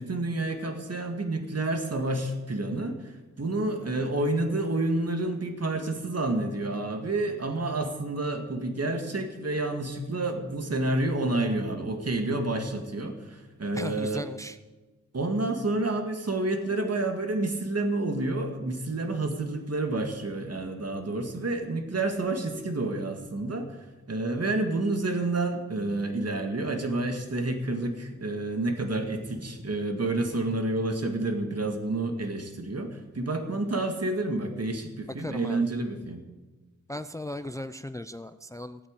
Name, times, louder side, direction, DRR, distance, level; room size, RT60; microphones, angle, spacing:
voice 1, 0.0-14.3 15.1-23.7 24.1-36.2, right 2 dB, 55° right, 5 dB, 2.1 m, -29 dB
voice 2, 13.7-14.6 28.9-29.8 35.2-35.7 36.9-38.9, left 1 dB, 10° left, 12 dB, 0.5 m, -38 dB
15.5 x 9.0 x 8.9 m, 1.2 s
wide cardioid pair, 80°, 30 cm